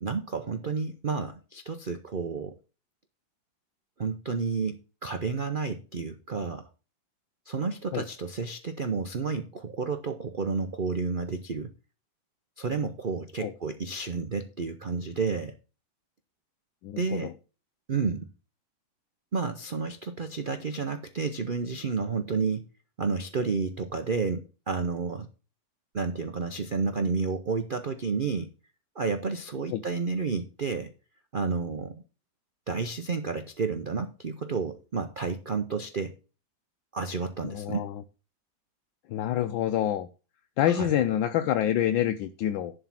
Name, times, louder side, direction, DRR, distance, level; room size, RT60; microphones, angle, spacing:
voice 1, 0.0-2.6 4.0-6.7 7.5-11.7 12.6-15.6 17.0-17.3 17.9-18.3 19.3-22.7 23.0-25.3 25.9-28.5 29.0-30.9 31.3-32.0 32.7-36.2 36.9-37.9 40.7-41.0, right 4 dB, 80° right, 0.4 m, -31 dB
voice 2, 16.8-17.3 29.7-29.8 37.4-37.9 39.1-40.1 40.6-42.7, left 11 dB, 80° left, 1.4 m, -27 dB
11.0 x 3.9 x 7.3 m
omnidirectional pair, 2.1 m